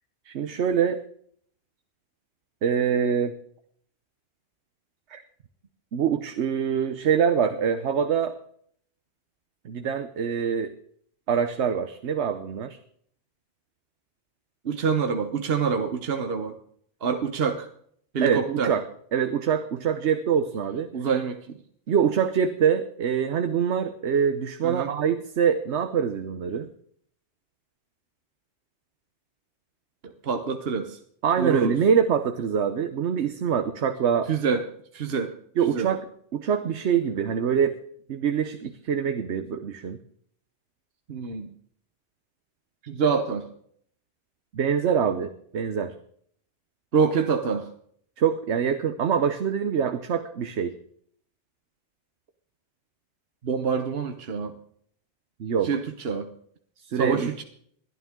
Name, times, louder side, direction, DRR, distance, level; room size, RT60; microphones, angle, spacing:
voice 1, 0.3-1.0 2.6-3.3 5.1-5.2 5.9-8.3 9.6-10.7 11.3-12.8 18.2-18.8 19.1-20.9 21.9-26.7 31.2-34.3 35.6-37.8 38.1-40.0 44.5-45.9 48.2-50.7 55.4-55.7 56.8-57.4, right 7 dB, 85° right, 9 dB, 1.1 m, -24 dB
voice 2, 14.6-16.5 17.0-17.7 18.1-18.7 20.9-21.6 24.6-24.9 30.0-31.0 31.4-31.7 34.3-34.6 34.9-35.3 35.7-35.9 41.1-41.5 42.8-43.4 46.9-47.7 53.4-54.5 55.6-56.3 57.0-57.4, right 6 dB, 65° right, 7 dB, 1.2 m, -26 dB
20.5 x 12.0 x 3.7 m, 0.62 s
omnidirectional pair, 1.1 m